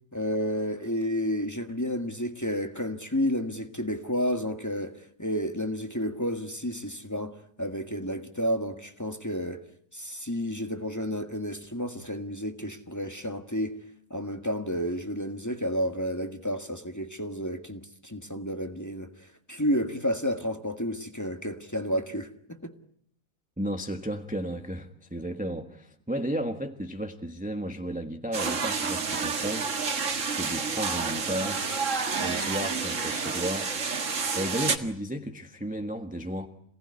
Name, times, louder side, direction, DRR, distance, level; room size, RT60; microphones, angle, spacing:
voice 1, 0.1-9.7 9.9-13.8 14.1-19.1 19.5-22.7, equal, 10° left, 1.7 m, -31 dB
voice 2, 23.6-29.7 30.3-31.6 32.2-33.7 34.3-36.5, equal, 5° right, 1.3 m, -33 dB
sound 1, 28.3-34.8, right 5 dB, 55° right, 2.0 m, -29 dB
27.5 x 18.5 x 9.8 m
omnidirectional pair, 1.6 m